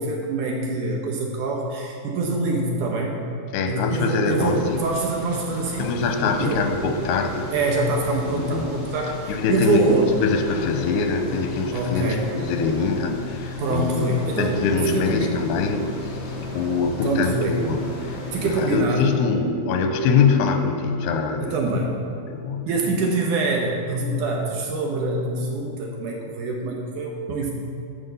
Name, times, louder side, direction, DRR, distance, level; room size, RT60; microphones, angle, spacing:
voice 1, 0.0-3.1 3.7-5.9 6.4-6.6 7.5-10.1 11.7-12.2 13.6-14.6 14.8-15.3 17.0-17.5 18.3-19.1 21.4-21.9 22.7-27.5, right 3 dB, 70° right, 0 dB, 2.0 m, -25 dB
voice 2, 3.5-4.8 5.8-7.5 8.3-8.8 9.3-14.0 14.4-16.2 16.5-17.8 18.1-21.5 22.3-22.7, left 5 dB, 90° left, 6 dB, 2.7 m, -23 dB
sound 1, 4.4-18.8, left 2 dB, 40° left, 1.9 m, -36 dB
9.5 x 6.1 x 7.0 m, 2.6 s
omnidirectional pair, 4.6 m